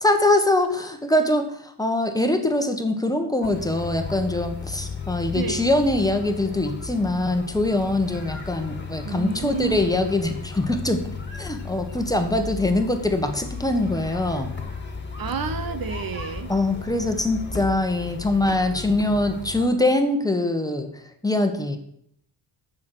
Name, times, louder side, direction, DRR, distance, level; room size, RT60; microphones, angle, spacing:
voice 1, 0.0-11.0 11.4-14.5 16.5-20.9 21.2-21.8, left 1 dB, 10° left, 6 dB, 1.2 m, -23 dB
sound 1, 3.4-19.7, left 4 dB, 25° left, 1.9 m, -35 dB
voice 2, 5.3-5.7 9.0-10.0 15.2-16.5, right 6 dB, 55° right, 10 dB, 1.0 m, -30 dB
7.1 x 6.5 x 7.9 m, 0.69 s
cardioid pair, 100°, 43 cm